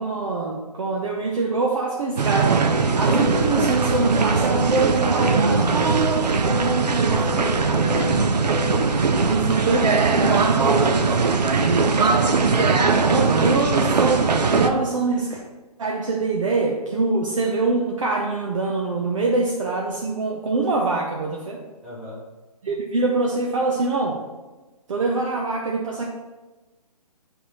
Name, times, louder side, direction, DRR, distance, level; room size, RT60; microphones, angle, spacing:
voice 1, 0.0-5.8 9.2-10.8 13.1-14.2 14.5-15.4 15.8-21.6 22.6-24.2 24.9-26.1, right 3 dB, 50° right, -1 dB, 0.8 m, -24 dB
sound 1, 2.2-14.7, right 4 dB, 90° right, 0.6 m, -20 dB
sound 2, 3.0-9.1, left 13 dB, 85° left, 0.4 m, -34 dB
voice 2, 6.1-6.5 7.0-9.0 13.0-13.4 21.8-22.2, left 1 dB, ahead, -8 dB, 0.3 m, -37 dB
7.9 x 3.4 x 4.3 m, 1.2 s
hypercardioid pair, 160°, 20 cm